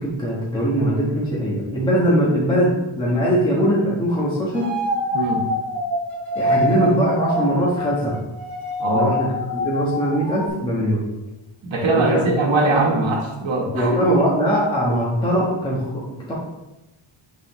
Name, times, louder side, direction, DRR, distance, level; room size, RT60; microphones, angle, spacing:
voice 1, 0.0-4.7 6.3-8.2 8.9-9.3 9.5-11.0 12.0-12.2 13.7-16.0 16.3-16.4, equal, 10° left, -7 dB, 1.3 m, -21 dB
sound 1, 4.5-10.5, left 1 dB, 30° left, 1.9 m, -25 dB
voice 2, 5.1-5.4 8.8-9.1 11.6-14.2, right 2 dB, 65° right, -2 dB, 1.4 m, -21 dB
8.6 x 4.2 x 3.2 m, 0.99 s
wide cardioid pair, 150°, 49 cm